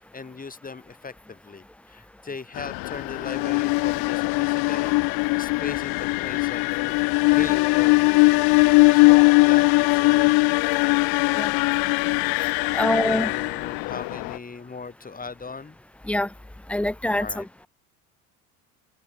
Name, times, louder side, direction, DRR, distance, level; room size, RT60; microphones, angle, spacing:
voice 1, 0.0-6.9 7.3-8.2 8.9-10.3 12.6-15.8 17.2-17.5, left 4 dB, 20° left, 5.7 m, -38 dB
sound 1, 2.6-14.4, left 28 dB, 55° left, 0.9 m, -20 dB
voice 2, 12.7-13.3 16.1-16.3 16.7-17.7, left 1 dB, 5° left, 0.6 m, -25 dB
open air
hypercardioid pair, 80°, 43 cm